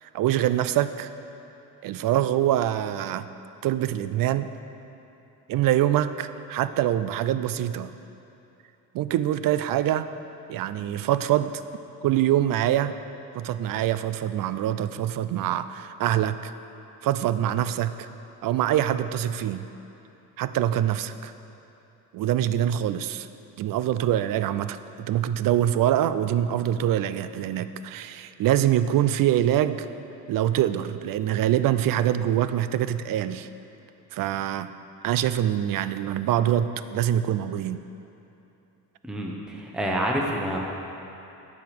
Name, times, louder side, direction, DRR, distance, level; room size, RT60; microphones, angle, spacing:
voice 1, 0.0-1.1 1.8-3.3 3.6-4.5 5.5-7.9 8.9-10.1 10.5-11.6 12.0-13.0 13.3-16.5 17.0-18.1 18.4-19.7 20.4-21.3 22.1-23.3 23.6-29.9 30.3-33.5 34.1-34.7 35.0-37.8, right 11 dB, 60° right, 12 dB, 0.5 m, -24 dB
voice 2, 39.0-40.6, equal, ahead, -2 dB, 1.0 m, -28 dB
9.2 x 5.1 x 7.6 m, 2.9 s
cardioid pair, 110°, 39 cm